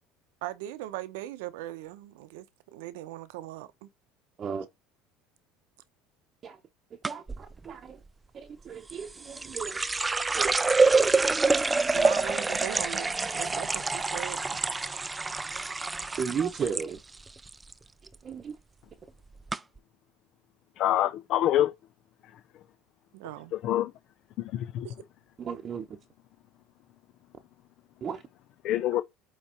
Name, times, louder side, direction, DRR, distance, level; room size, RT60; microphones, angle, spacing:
voice 1, 0.4-3.9 11.9-14.6 23.1-23.5 24.8-24.9, right 15 dB, 85° right, 0.8 m, -39 dB
sound 1, 7.0-7.4 8.9-16.9 17.1-17.7 18.1-18.4 19.1-19.2 19.5-19.6, right 3 dB, 15° right, 0.3 m, -26 dB
voice 2, 7.0-8.0 8.3-9.8 10.3-10.5 16.2-17.0 18.2-18.6 25.4-26.0 28.0-28.2, right 6 dB, 35° right, 0.8 m, -35 dB
voice 3, 20.8-21.7 23.6-23.9 24.4-24.9 28.6-29.0, left 12 dB, 55° left, 0.4 m, -25 dB
8.3 x 3.1 x 4.3 m
supercardioid pair, 120°, 0 cm